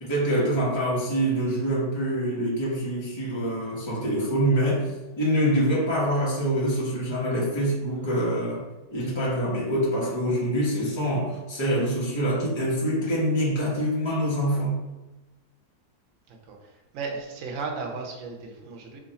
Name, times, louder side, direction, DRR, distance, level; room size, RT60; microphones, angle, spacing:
voice 1, 0.0-4.9 5.2-14.8, equal, 20° left, -6 dB, 0.9 m, -25 dB
voice 2, 16.3-19.0, right 4 dB, 60° right, 1 dB, 1.0 m, -35 dB
3.1 x 2.5 x 4.0 m, 1.1 s
omnidirectional pair, 1.7 m